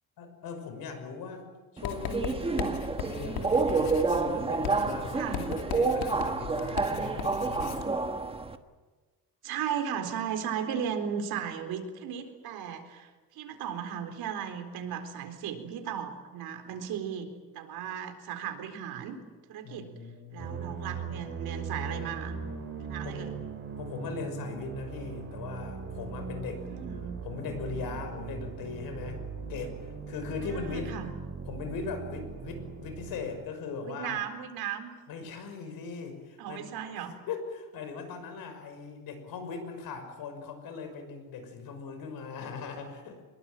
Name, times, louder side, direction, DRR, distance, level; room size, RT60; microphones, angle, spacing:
voice 1, 0.2-1.5 1.7-7.9 19.6-20.9 23.0-23.2 23.8-26.7 27.2-31.0 31.5-34.2 35.1-43.2, left 5 dB, 70° left, 7 dB, 6.1 m, -39 dB
Writing, 1.8-7.9, left 8 dB, 90° left, 2.8 m, -38 dB
Subway metro underground, 1.8-8.6, right 4 dB, 15° right, 1.3 m, -29 dB
voice 2, 9.4-17.3 17.5-19.2 19.5-19.9 20.3-22.4 22.8-23.4 26.7-27.1 30.5-31.1 33.8-34.9 36.4-37.2, right 8 dB, 80° right, 7 dB, 4.2 m, -36 dB
sound 1, 20.4-33.3, right 5 dB, 35° right, 7.1 m, -39 dB
25.0 x 22.0 x 9.0 m, 1.3 s
cardioid pair, 155°, 37 cm